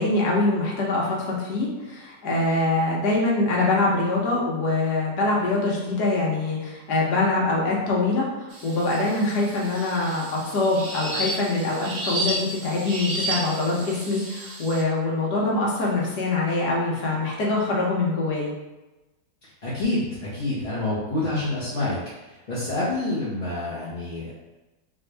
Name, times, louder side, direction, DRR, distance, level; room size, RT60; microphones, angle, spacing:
voice 1, 0.0-18.5, left 2 dB, 90° left, -4 dB, 1.5 m, -24 dB
sound 1, 8.5-14.8, right 2 dB, 55° right, 1.2 m, -32 dB
voice 2, 19.4-22.0 22.5-24.3, left 2 dB, 30° left, -11 dB, 0.9 m, -27 dB
3.7 x 2.7 x 3.3 m, 1.1 s
omnidirectional pair, 1.7 m